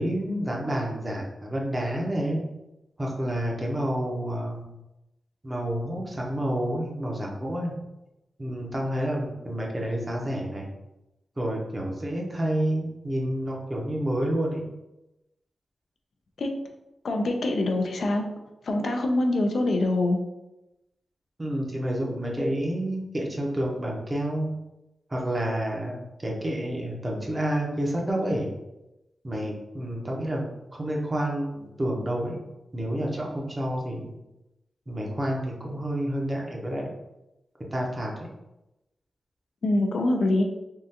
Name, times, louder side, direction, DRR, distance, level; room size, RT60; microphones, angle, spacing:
voice 1, 0.0-2.4 3.0-4.6 5.4-7.8 8.4-10.7 11.4-14.6 21.4-24.5 25.1-28.5 29.2-30.4 30.7-32.4 32.7-34.1 34.9-36.9 37.7-38.1, right 1 dB, 25° right, -1 dB, 0.7 m, -29 dB
voice 2, 17.0-18.2 18.6-20.2 39.6-40.4, left 2 dB, 65° left, 3 dB, 0.4 m, -24 dB
3.6 x 2.3 x 2.7 m, 0.94 s
wide cardioid pair, 95°, 0 cm